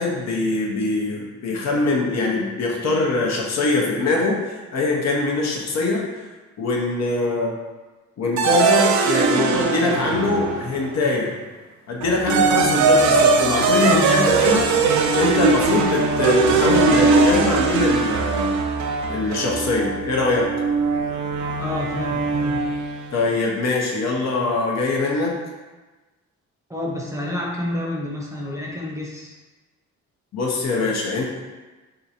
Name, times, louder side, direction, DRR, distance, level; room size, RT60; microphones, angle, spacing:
voice 1, 0.0-6.0 6.6-7.6 8.2-11.3 11.9-14.7 15.2-18.6 19.1-20.5 23.1-25.4 30.3-31.2, left 3 dB, 60° left, -1 dB, 0.8 m, -22 dB
sound 1, 8.4-10.9 12.0-23.1, right 4 dB, 70° right, 0.5 m, -20 dB
voice 2, 13.9-14.3 21.6-22.7 26.7-29.4, left 1 dB, 10° right, -3 dB, 0.7 m, -29 dB
2.7 x 2.5 x 4.1 m, 1.2 s
cardioid pair, 90°, 30 cm